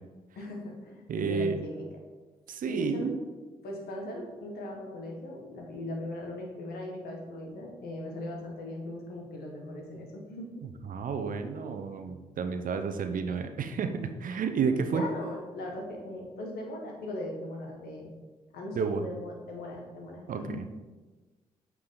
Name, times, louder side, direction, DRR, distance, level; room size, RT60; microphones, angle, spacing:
voice 1, 0.4-1.9 2.7-3.1 3.6-10.5 14.9-18.1 18.5-20.6, left 1 dB, 70° left, 1 dB, 1.7 m, -39 dB
voice 2, 1.1-1.6 2.5-3.2 10.9-15.0 18.7-19.0 20.3-20.6, right 5 dB, 55° right, 8 dB, 0.8 m, -31 dB
8.7 x 4.9 x 4.0 m, 1.2 s
hypercardioid pair, 45°, 16 cm